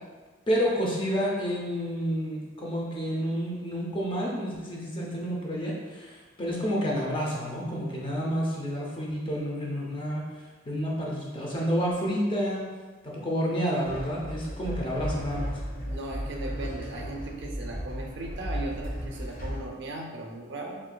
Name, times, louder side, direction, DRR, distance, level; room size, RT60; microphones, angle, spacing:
voice 1, 0.5-10.2 10.7-12.6 13.0-15.5, equal, 25° left, -3 dB, 0.6 m, -29 dB
sound 1, 13.8-19.6, equal, 50° left, 1.0 m, -35 dB
voice 2, 15.9-20.8, right 2 dB, 60° right, 1 dB, 0.5 m, -37 dB
4.3 x 2.5 x 2.2 m, 1.3 s
head